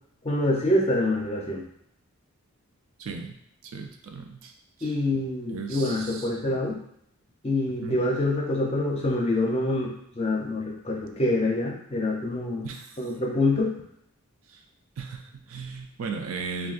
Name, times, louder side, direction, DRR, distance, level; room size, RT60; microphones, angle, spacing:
voice 1, 0.2-1.6 4.8-6.8 7.4-12.7 13.0-13.7, left 1 dB, 30° left, -2 dB, 0.6 m, -26 dB
voice 2, 3.0-3.4 3.6-4.5 4.8-5.0 5.5-6.3 7.8-8.0 12.6-13.1 14.5-14.6 15.0-16.7, right 4 dB, 65° right, 3 dB, 0.4 m, -36 dB
3.7 x 2.3 x 2.5 m, 0.71 s
head